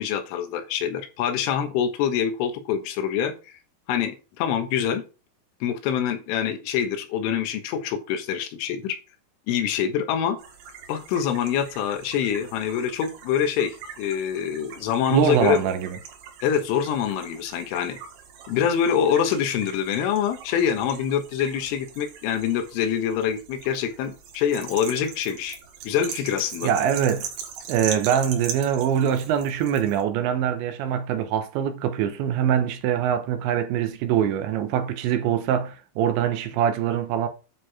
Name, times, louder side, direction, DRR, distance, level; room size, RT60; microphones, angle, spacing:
voice 1, 0.0-3.6 3.9-5.0 5.6-9.0 9.5-10.4 10.9-15.6 16.4-18.0 18.5-25.6 25.9-26.7, left 8 dB, 85° left, 3.7 m, -25 dB
sound 1, 10.4-30.0, right 7 dB, 60° right, 3.5 m, -41 dB
voice 2, 15.1-15.9 26.6-27.3 27.7-37.3, right 9 dB, 80° right, 2.9 m, -23 dB
9.7 x 4.7 x 5.8 m
omnidirectional pair, 5.6 m